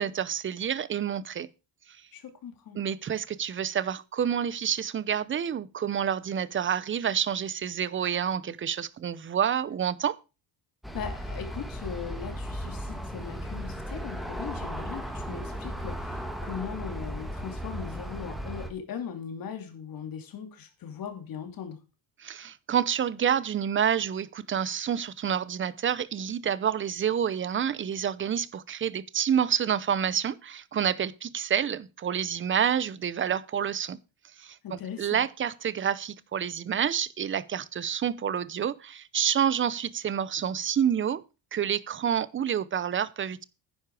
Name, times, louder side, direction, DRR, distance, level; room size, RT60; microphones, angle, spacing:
voice 1, 0.0-1.5 2.7-10.2 22.2-34.0 34.4-34.6 35.0-41.2 41.5-43.4, right 8 dB, 30° right, 0.7 m, -28 dB
voice 2, 2.1-2.8 10.9-21.8 34.6-35.2, left 7 dB, 50° left, 3.1 m, -39 dB
Aircraft, 10.8-18.7, equal, ahead, 1.8 m, -36 dB
10.5 x 10.0 x 4.8 m
cardioid pair, 155°, 43 cm